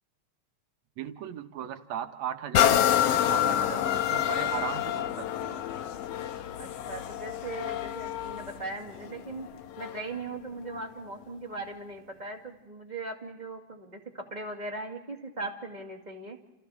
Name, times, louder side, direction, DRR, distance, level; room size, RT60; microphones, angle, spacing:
voice 1, 1.0-5.7, right 10 dB, 70° right, 7 dB, 2.3 m, -37 dB
sound 1, 2.5-10.2 10.7-10.8, left 11 dB, 65° left, 1.8 m, -28 dB
voice 2, 6.6-9.5 9.8-16.4, right 3 dB, 15° right, 1 dB, 1.7 m, -39 dB
29.5 x 29.5 x 3.5 m, 1.1 s
omnidirectional pair, 3.3 m